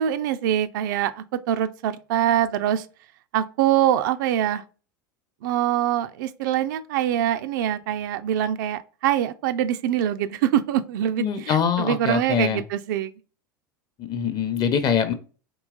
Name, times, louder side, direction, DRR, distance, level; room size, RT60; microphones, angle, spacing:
voice 1, 0.0-2.9 3.3-4.6 5.4-13.1, right 11 dB, 70° right, 0.4 m, -24 dB
voice 2, 11.2-12.6 14.0-15.1, left 7 dB, 40° left, 0.7 m, -23 dB
3.8 x 2.9 x 2.3 m
hypercardioid pair, 90°, 11 cm